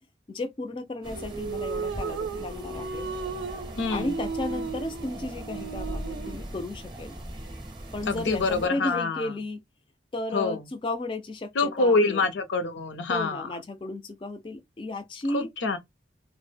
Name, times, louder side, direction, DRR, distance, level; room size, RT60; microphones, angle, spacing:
voice 1, 0.3-3.1 3.9-7.2 7.9-9.6 10.1-12.3 13.1-15.5, left 2 dB, 30° left, 0.3 m, -34 dB
sound 1, 1.0-8.7, right 1 dB, 25° right, 0.6 m, -40 dB
sound 2, 1.1-6.5, right 4 dB, 90° right, 0.4 m, -35 dB
voice 2, 3.8-4.1 8.1-9.3 10.3-10.6 11.6-13.5 15.3-15.8, left 3 dB, 85° left, 0.6 m, -25 dB
2.1 x 2.0 x 3.3 m
head